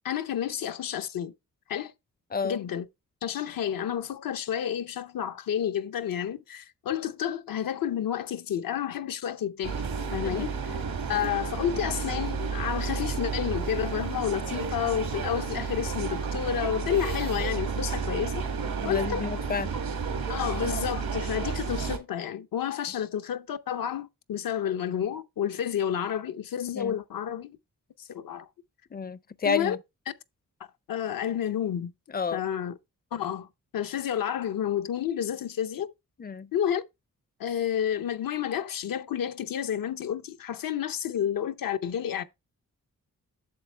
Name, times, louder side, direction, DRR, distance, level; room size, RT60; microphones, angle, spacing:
voice 1, 0.0-1.3 1.7-1.9 2.4-2.9 3.2-9.8 10.1-10.8 11.1-18.4 18.8-19.3 20.3-27.5 28.0-28.5 29.4-29.8 30.9-31.9 32.3-32.8 33.1-33.5 33.7-35.9 36.5-36.8 37.4-42.2, left 9 dB, 80° left, 0.7 m, -30 dB
sound 1, 9.6-22.0, right 5 dB, 90° right, 1.8 m, -31 dB
voice 2, 18.8-19.7 26.7-27.0 28.9-29.8 32.1-32.4 36.2-36.5, left 5 dB, 30° left, 0.4 m, -30 dB
7.8 x 7.1 x 3.3 m
cardioid pair, 65°, 34 cm